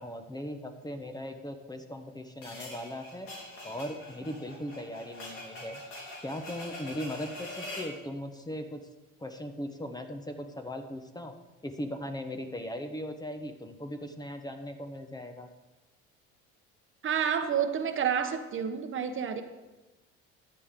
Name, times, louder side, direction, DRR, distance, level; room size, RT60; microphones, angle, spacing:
voice 1, 0.0-3.3 3.6-5.8 6.2-8.8 9.2-11.3 11.6-15.5, equal, 15° left, 6 dB, 1.0 m, -38 dB
sound 1, 2.4-8.0, left 1 dB, 90° left, 3.8 m, -43 dB
voice 2, 17.0-19.4, right 8 dB, 45° right, 8 dB, 1.1 m, -29 dB
14.5 x 9.8 x 3.7 m, 1.1 s
cardioid pair, 100°, 30 cm